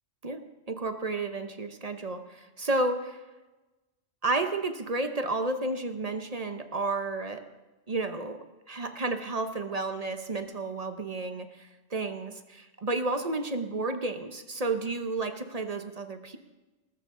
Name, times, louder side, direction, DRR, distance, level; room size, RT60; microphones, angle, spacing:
voice 1, 0.2-3.2 4.2-7.4 7.9-8.4 8.7-16.4, right 2 dB, 35° right, 8 dB, 0.8 m, -31 dB
19.0 x 13.5 x 3.8 m, 1.1 s
omnidirectional pair, 1.3 m